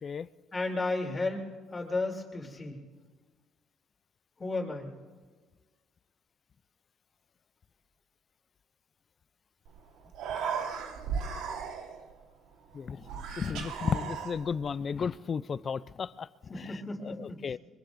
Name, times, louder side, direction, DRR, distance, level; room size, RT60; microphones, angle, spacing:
voice 1, 0.5-1.4 1.7-2.8 4.4-4.9 16.5-17.4, left 2 dB, 25° left, 3.1 m, -33 dB
Human voice, 9.7-9.8 10.0-12.1 13.0-14.7, right 6 dB, 80° right, 1.5 m, -36 dB
voice 2, 12.7-13.1 13.4-17.6, left 6 dB, 40° left, 0.4 m, -34 dB
24.5 x 22.0 x 2.6 m
cardioid pair, 95°, 0 cm